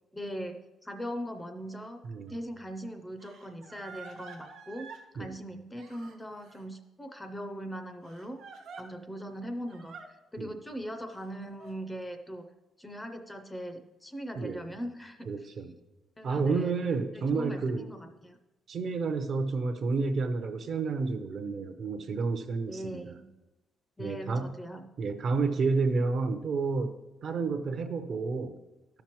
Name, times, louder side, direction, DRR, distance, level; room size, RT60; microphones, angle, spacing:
voice 1, 0.1-8.4 8.8-12.5 12.8-15.3 16.2-16.8 17.1-18.4 22.7-23.3 24.0-24.9, equal, 10° left, 7 dB, 0.4 m, -40 dB
voice 2, 2.0-2.4 5.2-5.4 10.4-10.5 14.4-14.7 15.3-15.7 16.2-17.9 18.7-23.2 24.0-24.5 25.0-27.0 27.2-28.5, right 4 dB, 45° right, 8 dB, 0.6 m, -30 dB
Crying sobbing, 2.3-2.4 3.2-5.1 5.8-6.6 8.0-8.8 9.7-10.1 11.1-11.7, right 5 dB, 90° right, 1.2 m, -48 dB
12.5 x 5.8 x 3.0 m, 1.0 s
cardioid pair, 170°, 0 cm